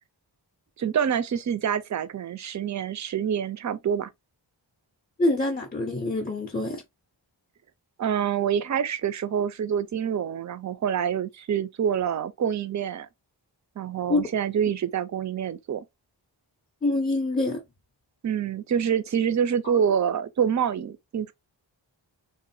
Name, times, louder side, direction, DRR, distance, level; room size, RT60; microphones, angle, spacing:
voice 1, 0.8-4.1 8.0-13.1 13.8-15.8 18.2-21.3, right 8 dB, 40° right, 0.4 m, -26 dB
voice 2, 5.2-6.8 14.1-14.3 16.8-17.6 19.6-19.7, left 2 dB, 20° left, 0.5 m, -25 dB
3.1 x 2.1 x 2.6 m
wide cardioid pair, 50°, 46 cm